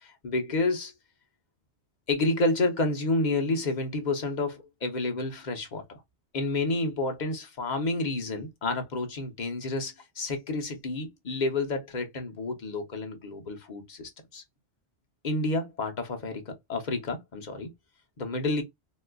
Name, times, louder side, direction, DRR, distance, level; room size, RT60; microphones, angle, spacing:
voice 1, 0.0-0.9 2.1-6.0 6.3-14.4 15.2-17.7 18.2-18.6, left 2 dB, 45° left, 0.9 m, -30 dB
4.1 x 2.4 x 2.2 m
omnidirectional pair, 1.2 m